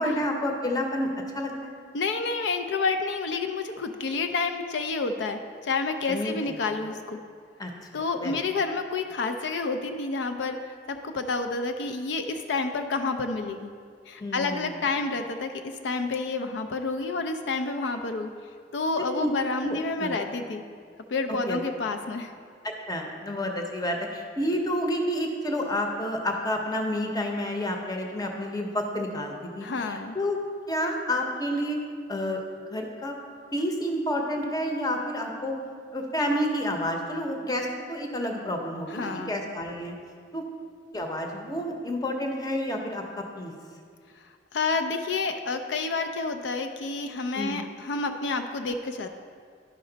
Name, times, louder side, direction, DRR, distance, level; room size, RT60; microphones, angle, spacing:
voice 1, 0.0-1.7 6.1-6.6 7.6-8.4 14.2-14.9 19.1-19.3 19.6-20.2 21.3-21.6 22.6-30.4 30.7-32.4 32.7-33.1 33.5-35.6 35.9-39.9 40.3-40.4 40.9-43.5 47.3-47.6, equal, 20° left, 2 dB, 0.7 m, -30 dB
voice 2, 1.9-7.2 7.9-10.6 10.9-13.7 14.1-18.3 18.7-20.7 21.1-22.3 29.6-30.2 38.9-39.4 44.5-49.1, left 3 dB, 75° left, 6 dB, 0.4 m, -29 dB
11.0 x 5.1 x 3.9 m, 2.1 s
head